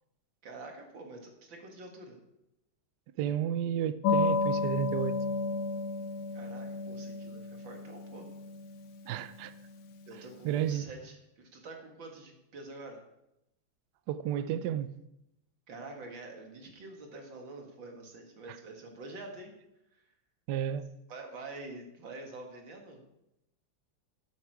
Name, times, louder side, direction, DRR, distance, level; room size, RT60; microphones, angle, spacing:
voice 1, 0.4-2.2 6.3-8.3 10.1-13.0 15.7-19.5 19.9-20.0 21.1-23.0, right 2 dB, 60° right, 2.6 m, -46 dB
voice 2, 3.2-5.2 9.1-9.5 10.4-10.8 14.1-15.0 20.5-20.9, right 10 dB, 80° right, 0.9 m, -32 dB
sound 1, 4.0-10.2, left 3 dB, 85° left, 1.8 m, -33 dB
12.0 x 8.5 x 4.8 m
omnidirectional pair, 2.4 m